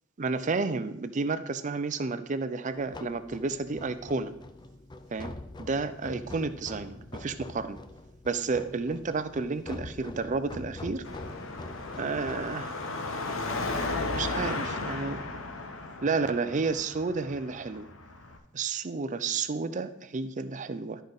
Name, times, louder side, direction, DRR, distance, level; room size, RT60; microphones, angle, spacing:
voice 1, 0.2-4.3 5.1-5.3 5.6-7.8 8.2-11.0 12.0-12.8 14.1-15.2 16.0-17.9 18.5-21.0, right 4 dB, 35° right, 11 dB, 0.5 m, -31 dB
sound 1, 2.7-12.6, left 2 dB, 20° left, 0.4 m, -44 dB
Car passing by / Traffic noise roadway noise / Engine, 11.0-18.4, left 3 dB, 75° left, 0.9 m, -35 dB
12.0 x 5.1 x 4.0 m, 0.80 s
head